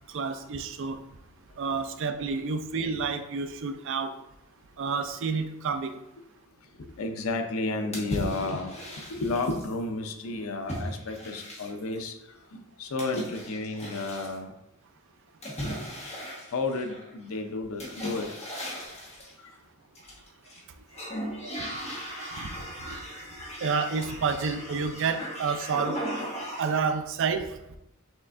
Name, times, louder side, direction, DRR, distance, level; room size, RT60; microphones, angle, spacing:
voice 1, 0.1-1.0 1.6-4.1 4.8-6.0 20.9-21.0 21.4-21.6 21.9-22.9 23.6-26.0 26.5-27.6, right 5 dB, 65° right, 9 dB, 0.4 m, -30 dB
voice 2, 6.8-8.7 9.1-14.5 16.5-18.6 19.4-19.5, left 3 dB, 70° left, 6 dB, 0.6 m, -32 dB
sound 1, 7.9-9.7 10.7-12.0 13.0-14.4 15.4-17.1 17.8-19.3 19.9-20.6 20.9-26.9, equal, 30° left, 1.2 m, -37 dB
6.2 x 3.2 x 2.5 m, 0.86 s
head